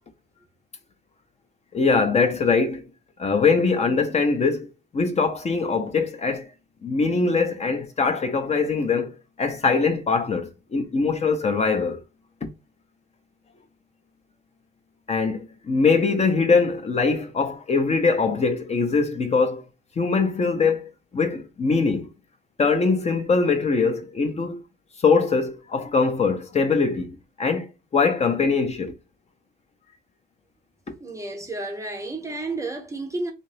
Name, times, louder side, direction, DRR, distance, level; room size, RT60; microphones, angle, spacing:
voice 1, 1.7-2.9 3.2-4.7 4.9-6.5 6.8-12.0 15.1-19.6 20.0-22.1 22.6-24.6 25.0-27.7 27.9-28.9, left 4 dB, 35° left, 0.7 m, -22 dB
voice 2, 31.0-33.3, right 2 dB, 15° right, 0.6 m, -31 dB
2.7 x 2.5 x 3.3 m
cardioid pair, 90°, 20 cm